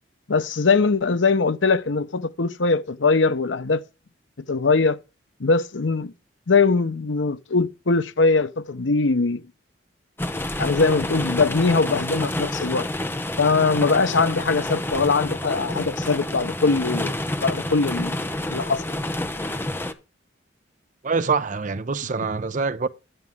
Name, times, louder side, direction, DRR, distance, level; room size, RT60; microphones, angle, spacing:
voice 1, 0.3-3.8 4.5-5.0 5.4-6.1 6.5-9.4 10.6-12.9 13.4-18.2 18.5-18.8, left 4 dB, 85° left, 0.8 m, -21 dB
sound 1, 10.2-19.9, left 1 dB, 10° left, 0.7 m, -28 dB
voice 2, 21.0-22.9, right 4 dB, 45° right, 0.6 m, -25 dB
10.5 x 9.0 x 3.6 m
head